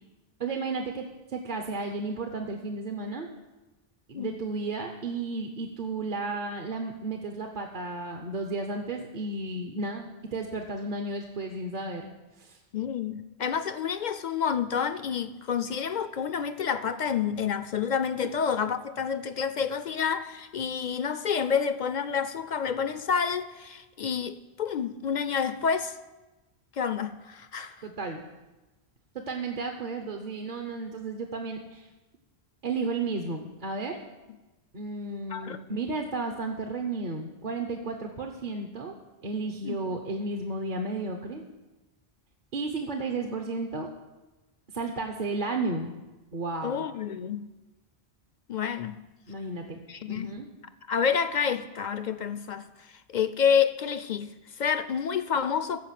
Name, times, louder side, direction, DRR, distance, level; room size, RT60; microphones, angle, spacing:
voice 1, 0.4-3.3 4.1-12.1 12.4-12.6 27.8-28.2 29.1-31.9 32.6-34.0 34.7-38.9 39.2-41.4 42.5-43.9 44.7-46.0 46.3-46.8 49.3-49.8 50.1-50.5, right 3 dB, 50° right, 1.0 m, -33 dB
voice 2, 12.7-26.0 26.7-27.9 35.3-35.6 39.6-39.8 46.6-47.5 48.5-49.0 49.9-50.4 50.9-52.7 53.1-55.8, left 7 dB, 55° left, 0.5 m, -29 dB
14.5 x 5.0 x 7.5 m
omnidirectional pair, 1.1 m